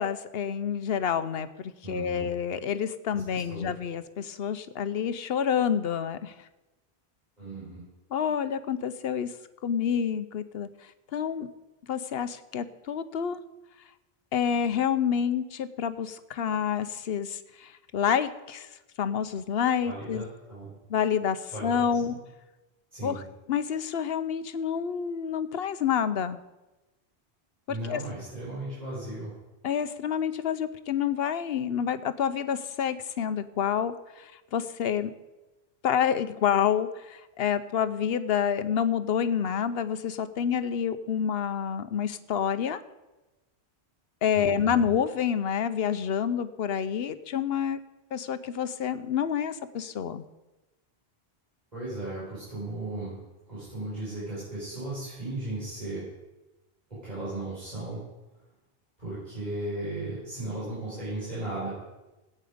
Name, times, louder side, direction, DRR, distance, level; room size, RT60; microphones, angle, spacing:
voice 1, 0.0-6.3 8.1-9.3 9.6-10.7 11.1-11.5 11.9-13.4 14.3-18.7 19.0-20.2 20.9-22.2 23.0-23.2 23.5-26.4 27.9-28.0 29.6-35.1 35.8-42.8 44.2-47.8 48.1-50.2, left 8 dB, 70° left, 12 dB, 0.9 m, -28 dB
voice 2, 1.8-2.3 3.1-3.7 7.4-7.8 19.8-20.7 21.5-22.2 22.9-23.2 27.7-29.3 44.3-44.8 51.7-53.2 53.5-56.0 56.9-58.0 59.0-61.7, right 2 dB, 40° right, -10 dB, 5.1 m, -36 dB
17.0 x 8.8 x 5.0 m, 1.1 s
omnidirectional pair, 1.1 m